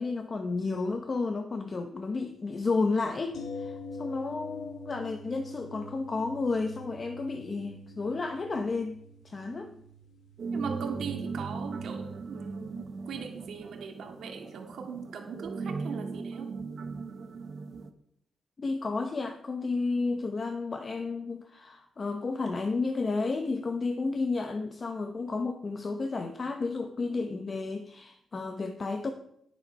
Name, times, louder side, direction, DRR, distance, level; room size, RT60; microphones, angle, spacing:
voice 1, 0.0-8.9 9.2-9.7 18.6-29.1, left 3 dB, 35° left, 6 dB, 0.9 m, -32 dB
sound 1, 3.3-13.2 13.5-13.6, left 2 dB, 85° left, 1.7 m, -45 dB
sound 2, 10.4-17.9, right 4 dB, 60° right, 1.0 m, -38 dB
voice 2, 10.5-16.5, right 6 dB, 75° right, 3 dB, 2.0 m, -40 dB
10.0 x 7.3 x 5.5 m, 0.74 s
cardioid pair, 110°, 0 cm